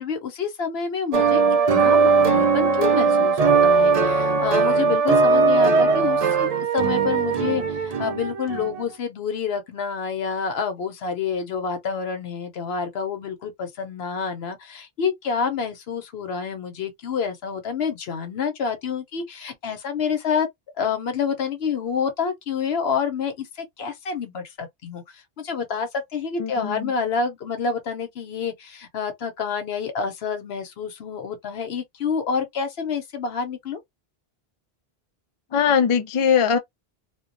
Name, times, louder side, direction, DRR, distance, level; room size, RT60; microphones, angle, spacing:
voice 1, 0.0-1.4 1.7-20.5 20.8-25.0 25.4-33.8, left 6 dB, 80° left, 1.0 m, -28 dB
sound 1, 1.1-8.7, right 4 dB, 50° right, 0.5 m, -19 dB
voice 2, 26.4-26.9 35.5-36.6, left 7 dB, 50° left, 0.4 m, -21 dB
2.2 x 2.2 x 2.5 m
omnidirectional pair, 1.0 m